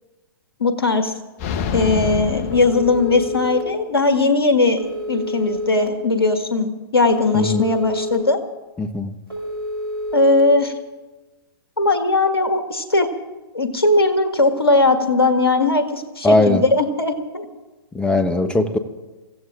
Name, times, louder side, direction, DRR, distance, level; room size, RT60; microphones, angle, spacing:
voice 1, 0.6-1.1 1.7-4.8 5.1-8.4 10.1-10.7 11.8-13.1 13.5-17.5, left 2 dB, 80° left, 7 dB, 1.7 m, -18 dB
sound 1, 1.4-3.6, left 8 dB, 40° left, 0.9 m, -27 dB
Telephone, 2.5-3.6 4.8-5.9 7.1-8.2 9.3-10.4, equal, 80° right, 6.7 m, -28 dB
voice 2, 7.3-7.7 8.8-9.1 16.2-16.6 17.9-18.8, left 2 dB, 5° left, 10 dB, 0.9 m, -18 dB
29.5 x 15.5 x 2.5 m, 1.2 s
figure-of-eight pair, 110°, 13 cm